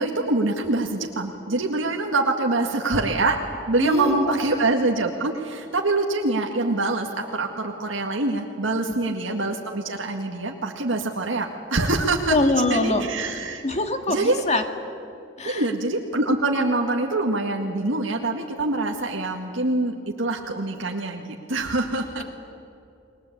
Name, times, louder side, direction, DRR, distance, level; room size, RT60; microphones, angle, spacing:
voice 1, 0.0-3.4 3.7-12.4 12.7-13.6 14.1-14.4 15.4-22.2, right 2 dB, 70° right, 1 dB, 2.0 m, -25 dB
voice 2, 3.8-4.4 12.3-13.0 13.6-14.6 15.4-15.7, left 2 dB, 35° left, 6 dB, 2.0 m, -23 dB
30.0 x 21.5 x 8.5 m, 2.6 s
head